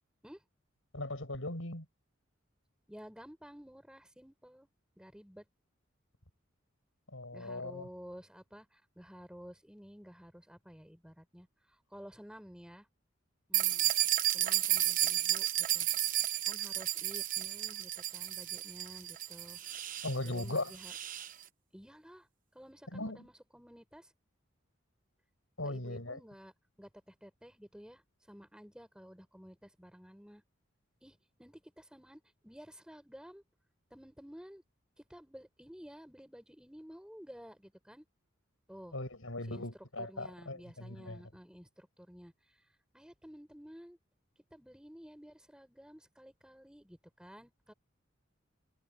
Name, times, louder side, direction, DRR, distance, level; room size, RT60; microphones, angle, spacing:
voice 1, 0.9-1.9 7.1-7.9 20.0-20.7 22.9-23.2 25.6-26.2 38.9-41.2, left 2 dB, 80° left, 6.2 m, -38 dB
voice 2, 2.9-4.7 5.0-5.4 7.3-12.9 13.5-13.9 14.3-15.9 16.4-19.6 20.2-21.0 21.7-22.3 22.5-24.1 25.6-26.5 26.8-28.0 28.3-30.4 31.0-33.4 33.9-34.6 35.0-38.0 38.7-38.9 39.5-39.6 40.0-42.6 42.9-44.0 44.5-47.7, equal, 5° right, 4.9 m, -52 dB
sound 1, 13.5-21.3, right 13 dB, 40° right, 1.0 m, -32 dB
head